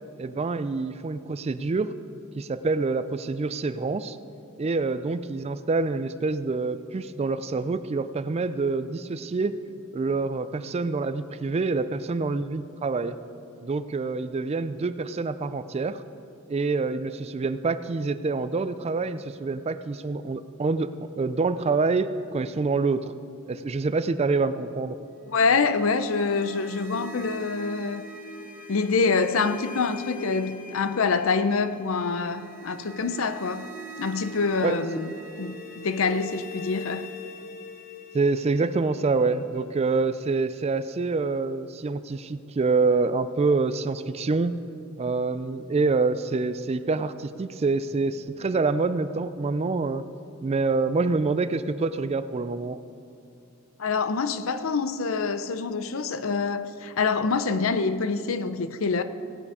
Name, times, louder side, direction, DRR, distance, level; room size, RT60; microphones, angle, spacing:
voice 1, 0.2-1.9 2.4-4.2 4.6-9.6 9.9-13.2 13.6-16.0 16.5-23.1 23.5-25.0 34.6-34.8 38.1-44.5 45.0-50.0 50.4-52.8, right 3 dB, 30° right, 0.4 m, -26 dB
voice 2, 25.3-28.0 28.7-33.7 34.0-35.1 35.4-37.1 53.8-59.0, left 4 dB, 70° left, 0.6 m, -26 dB
sound 1, 25.3-40.3, left 2 dB, 45° left, 1.3 m, -42 dB
17.0 x 8.6 x 4.9 m
head